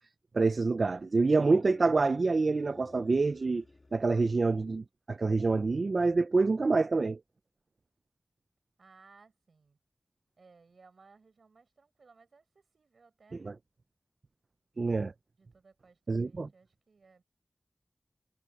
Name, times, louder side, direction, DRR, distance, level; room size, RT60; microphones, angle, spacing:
voice 1, 0.3-3.6 3.9-7.2 13.4-13.5 14.8-15.1 16.1-16.5, right 3 dB, 70° right, 0.4 m, -27 dB
sound 1, 1.0-4.7, left 2 dB, 50° left, 1.9 m, -54 dB
voice 2, 8.8-9.8 10.4-13.6 15.4-17.2, right 4 dB, 90° right, 7.2 m, -61 dB
wide cardioid pair, 50°, 0 cm